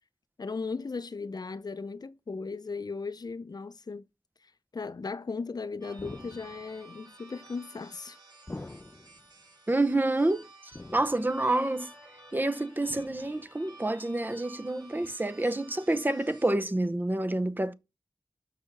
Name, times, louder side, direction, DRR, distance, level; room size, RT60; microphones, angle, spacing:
voice 1, 0.4-4.1 4.4-8.2, left 4 dB, 65° left, 0.6 m, -37 dB
sound 1, 5.8-16.5, right 2 dB, 70° right, 3.5 m, -53 dB
sound 2, 6.0-6.8 8.5-9.3 10.7-11.5 12.9-13.4 15.0-15.1, left 2 dB, 25° left, 0.4 m, -45 dB
voice 2, 9.7-10.5 10.9-11.9 12.3-17.7, right 2 dB, 25° right, 0.7 m, -28 dB
6.5 x 6.0 x 5.3 m
wide cardioid pair, 60°, 7 cm